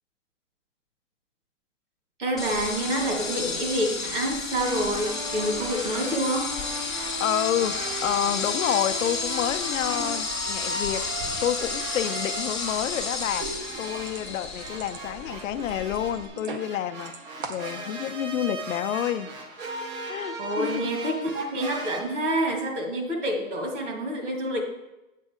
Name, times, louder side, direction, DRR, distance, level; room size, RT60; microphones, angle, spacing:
voice 1, 2.2-6.6 20.4-24.6, right 1 dB, 60° right, 2.1 m, -28 dB
sound 1, 2.4-16.3, left 4 dB, ahead, 0.7 m, -32 dB
sound 2, 4.6-22.0, right 2 dB, 75° right, 2.1 m, -37 dB
sound 3, 5.5-5.6 5.8-5.9 6.4-7.5 7.8-8.6 9.0-9.5 9.8-16.7 17.0-17.8, right 4 dB, 40° right, 0.6 m, -43 dB
voice 2, 6.9-11.1 11.4-17.2 17.5-19.3 20.0-21.0, left 11 dB, 65° left, 0.5 m, -29 dB
8.3 x 6.3 x 4.9 m
hypercardioid pair, 175°, 42 cm